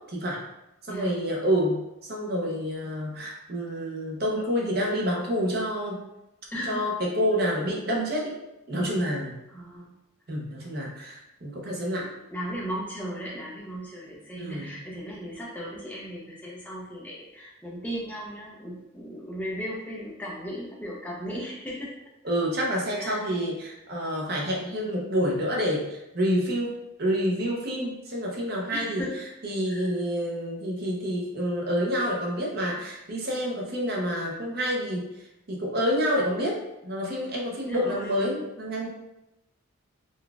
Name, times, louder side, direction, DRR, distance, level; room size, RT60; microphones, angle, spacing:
voice 1, 0.1-0.4 0.9-6.0 6.7-8.4 8.7-9.3 10.3-12.1 14.4-14.8 22.2-29.0 29.4-35.1 35.5-38.9, equal, 45° right, -2 dB, 0.6 m, -28 dB
voice 2, 6.5-6.8 9.5-9.9 11.9-21.9 23.0-23.2 28.7-29.2 29.7-29.9 37.7-38.2, equal, 5° left, -5 dB, 0.6 m, -36 dB
3.9 x 2.3 x 2.3 m, 0.90 s
head